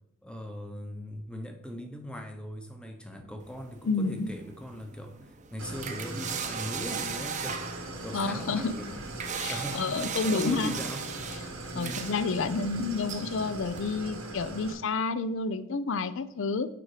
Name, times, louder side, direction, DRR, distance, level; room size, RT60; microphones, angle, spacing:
voice 1, 0.2-8.9 9.5-11.0 11.7-12.1, equal, 5° left, 5 dB, 0.8 m, -39 dB
sound 1, 3.4-13.9, right 6 dB, 35° right, 0.7 m, -39 dB
voice 2, 3.8-4.3 8.1-8.7 9.4-10.7 11.7-16.7, left 4 dB, 65° left, 14 dB, 0.5 m, -30 dB
Idling, 5.6-14.7, right 1 dB, 90° right, 1.5 m, -40 dB
6.8 x 4.9 x 4.9 m, 0.80 s
head